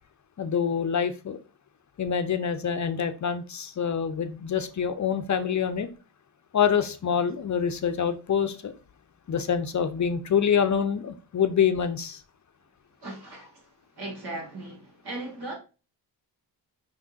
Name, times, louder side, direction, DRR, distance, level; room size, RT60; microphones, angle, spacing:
voice 1, 0.4-1.4 2.0-5.9 6.5-8.7 9.3-12.2, left 7 dB, 45° left, 0.6 m, -26 dB
voice 2, 13.0-13.7 14.0-15.5, right 2 dB, 70° right, 2.3 m, -37 dB
5.3 x 3.7 x 2.6 m
cardioid pair, 60°, 42 cm